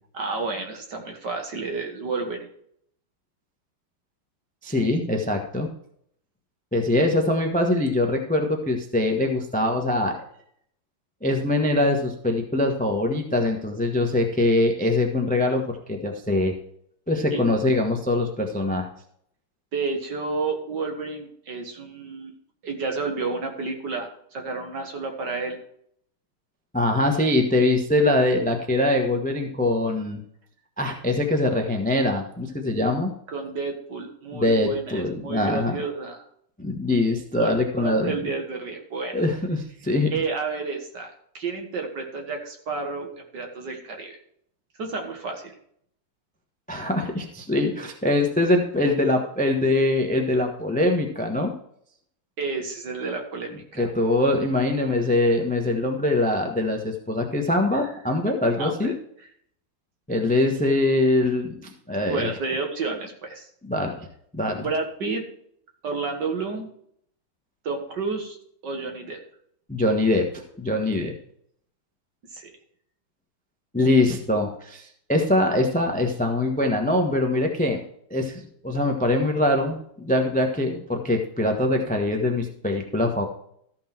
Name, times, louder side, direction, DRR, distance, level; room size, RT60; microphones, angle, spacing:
voice 1, 0.1-2.5 7.0-7.1 17.3-17.5 19.7-22.3 22.6-25.6 33.3-36.2 37.4-39.1 40.1-44.2 44.8-45.5 52.4-53.9 57.7-57.8 58.6-58.9 62.1-63.5 64.6-65.2 65.8-66.7 67.6-68.4 68.6-69.2 72.3-72.4, right 4 dB, 55° right, 3 dB, 2.1 m, -30 dB
voice 2, 4.6-5.7 6.7-10.2 11.2-16.5 17.1-18.9 26.7-30.2 30.8-33.1 34.3-35.8 36.6-38.1 39.1-40.1 46.7-51.5 53.8-58.9 60.1-61.5 61.9-62.3 63.6-63.9 64.3-64.7 69.7-71.1 73.7-77.8 78.1-83.2, left 2 dB, 5° left, 4 dB, 0.6 m, -23 dB
14.0 x 5.9 x 4.4 m, 0.67 s
omnidirectional pair, 2.4 m